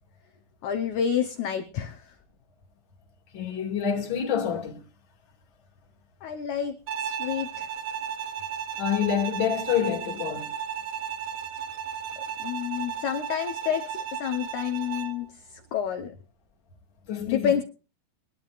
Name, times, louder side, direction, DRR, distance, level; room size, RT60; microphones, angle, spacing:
voice 1, 0.6-2.1 6.2-6.7 7.0-7.7 12.2-16.1 17.3-17.6, left 8 dB, 70° left, 2.1 m, -29 dB
voice 2, 3.3-4.8 8.8-10.5 17.1-17.6, left 8 dB, 35° left, 2.6 m, -27 dB
Bowed string instrument, 6.9-15.2, right 8 dB, 70° right, 2.0 m, -34 dB
24.5 x 10.5 x 2.5 m
omnidirectional pair, 4.1 m